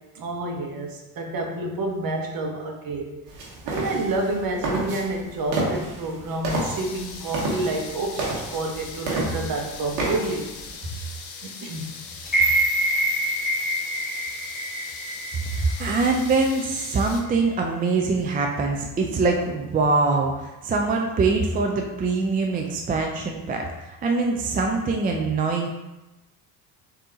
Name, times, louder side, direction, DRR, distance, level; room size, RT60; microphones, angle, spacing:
voice 1, 0.1-3.1 3.6-10.5 10.8-10.9 11.4-11.9, right 2 dB, 45° right, 1 dB, 1.1 m, -29 dB
sound 1, 3.3-10.7, right 2 dB, 90° right, 1.2 m, -31 dB
sound 2, 6.5-17.2, left 5 dB, 85° left, 0.8 m, -40 dB
sound 3, 12.3-16.4 16.8-16.9, right 1 dB, 20° left, 1.4 m, -25 dB
voice 2, 15.5-25.7, right 3 dB, 20° right, 1 dB, 0.3 m, -23 dB
3.6 x 2.9 x 3.7 m, 1.0 s
hypercardioid pair, 70°, 49 cm